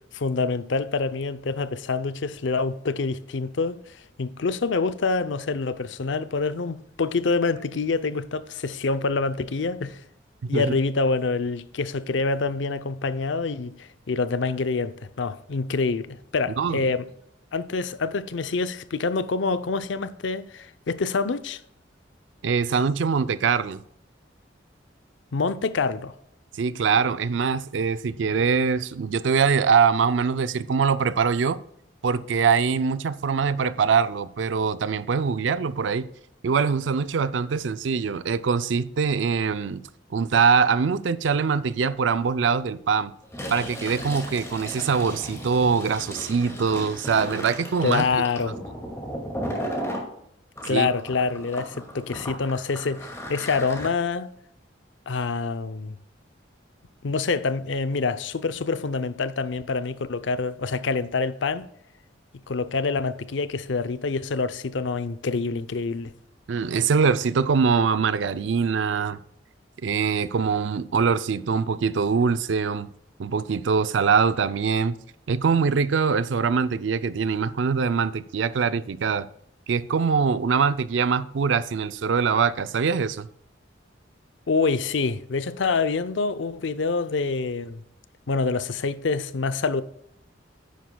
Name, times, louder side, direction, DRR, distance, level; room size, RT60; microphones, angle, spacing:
voice 1, 0.1-10.0 10.5-17.0 17.5-21.6 25.3-26.1 47.8-48.6 50.6-54.3 55.1-56.0 57.0-61.7 62.5-66.1 84.5-87.8 88.3-89.8, left 4 dB, 75° left, 0.6 m, -26 dB
voice 2, 22.4-23.8 26.5-31.6 32.0-36.1 36.4-39.8 40.1-43.1 43.5-48.0 50.7-50.9 66.5-69.2 69.8-72.9 73.2-75.0 75.3-79.3 79.7-83.3, right 5 dB, 75° right, 0.4 m, -23 dB
Fill (with liquid), 43.2-50.0 50.6-53.9, equal, 15° left, 2.1 m, -35 dB
10.0 x 9.3 x 2.3 m
head